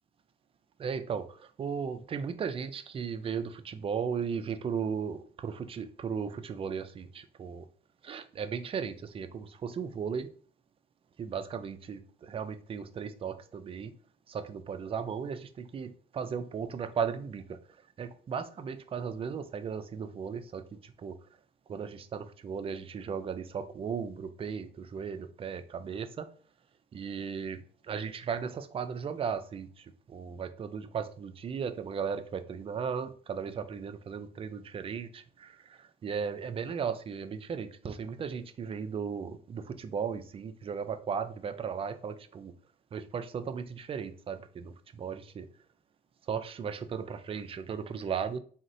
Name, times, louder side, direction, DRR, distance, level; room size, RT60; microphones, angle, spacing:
voice 1, 0.8-7.7 8.0-10.3 11.2-13.9 14.3-17.6 18.0-21.2 21.7-26.3 26.9-42.5 42.9-45.5 46.3-48.4, right 6 dB, 30° right, 10 dB, 0.4 m, -36 dB
3.7 x 2.1 x 2.6 m, 0.44 s
cardioid pair, 100°, 19 cm